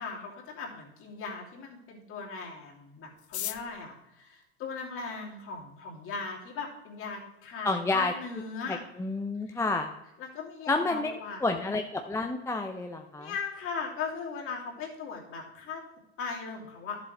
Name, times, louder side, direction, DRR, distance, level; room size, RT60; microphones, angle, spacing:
voice 1, 0.0-8.8 10.2-11.4 13.2-15.8 16.2-17.0, left 5 dB, 45° left, -1 dB, 2.8 m, -38 dB
sound 1, 3.2-5.4 6.2-6.3 6.5-6.6 6.9-7.4 7.7-7.8 8.0-8.4 8.7-8.9 9.3-9.6, left 12 dB, 85° left, 0.6 m, -41 dB
voice 2, 7.6-8.1 8.7-9.9 10.7-11.1 11.4-13.3, left 3 dB, 10° left, 5 dB, 0.6 m, -29 dB
11.5 x 7.3 x 3.2 m, 0.91 s
hypercardioid pair, 90°, 32 cm